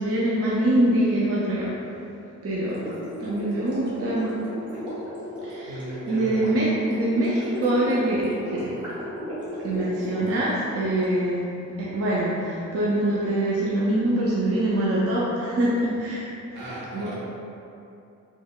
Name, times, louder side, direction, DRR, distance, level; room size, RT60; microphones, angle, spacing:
voice 1, 0.0-1.9 2.4-2.9 3.2-4.3 5.4-8.8 9.6-11.5 11.8-16.3 16.7-17.1, right 1 dB, 50° right, -6 dB, 0.4 m, -24 dB
Gurgling, 2.7-11.0, equal, 15° right, 1.2 m, -36 dB
voice 2, 5.7-6.5 16.5-17.2, equal, 80° right, -7 dB, 0.9 m, -36 dB
3.6 x 3.0 x 2.3 m, 2.7 s
wide cardioid pair, 175°, 30 cm